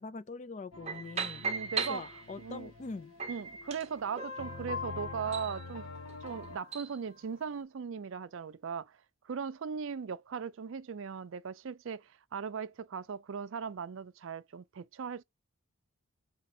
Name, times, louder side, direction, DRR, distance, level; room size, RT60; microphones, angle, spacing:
voice 1, 0.0-1.4 1.9-3.1, left 3 dB, 35° left, 0.3 m, -43 dB
sound 1, 0.7-6.6, left 3 dB, 80° left, 0.8 m, -47 dB
sound 2, 0.9-2.6 3.2-7.0, right 3 dB, 30° right, 0.7 m, -38 dB
voice 2, 1.4-2.0 2.4-2.7 3.3-5.9 6.2-8.9 9.2-15.2, right 6 dB, 60° right, 0.4 m, -38 dB
4.2 x 3.1 x 2.7 m
head